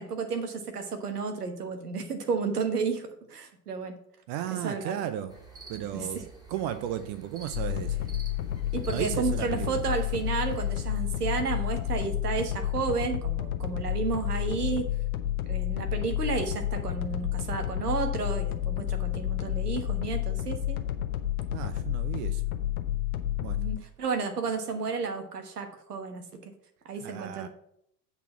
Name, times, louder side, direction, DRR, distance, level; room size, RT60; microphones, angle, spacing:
voice 1, 0.0-4.0 4.5-5.0 5.9-6.2 8.7-14.9 15.5-20.8 23.5-26.5 26.8-27.5, right 5 dB, 75° right, 6 dB, 1.3 m, -32 dB
voice 2, 4.3-5.3 5.7-6.2 6.5-8.1 8.9-9.8 21.5-22.4 23.4-23.6 27.0-27.5, right 11 dB, 45° right, 11 dB, 0.7 m, -34 dB
sound 1, 5.3-11.0, right 3 dB, 10° right, 2.5 m, -50 dB
sound 2, 7.5-23.8, left 13 dB, 65° left, 1.0 m, -30 dB
8.1 x 4.2 x 7.0 m, 0.72 s
figure-of-eight pair, 80°, 46 cm